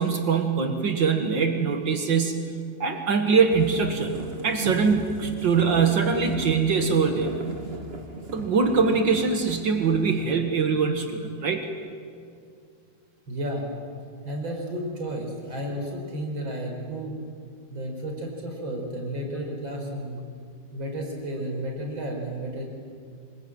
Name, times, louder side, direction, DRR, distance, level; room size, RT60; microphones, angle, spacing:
voice 1, 0.0-2.5 2.8-7.3 8.3-11.7, right 5 dB, 70° right, 5 dB, 2.3 m, -23 dB
sound 1, 3.5-10.3, right 3 dB, 30° right, 2.1 m, -37 dB
voice 2, 13.3-13.7 14.2-17.1 17.7-20.2 20.7-22.6, right 1 dB, 90° right, 1 dB, 5.5 m, -32 dB
25.5 x 21.5 x 9.1 m, 2.3 s
omnidirectional pair, 2.1 m